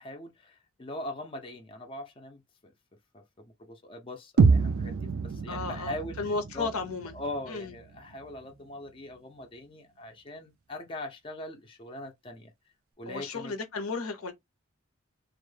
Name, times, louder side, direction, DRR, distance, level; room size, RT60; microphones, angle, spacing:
voice 1, 0.0-2.7 3.1-6.7 7.1-12.5 13.0-13.5, left 1 dB, 25° left, 0.5 m, -41 dB
sound 1, 4.4-8.4, right 4 dB, 70° right, 0.4 m, -27 dB
voice 2, 5.5-7.1 7.5-7.7 13.1-14.3, left 4 dB, 85° left, 0.6 m, -34 dB
2.1 x 2.0 x 3.1 m
head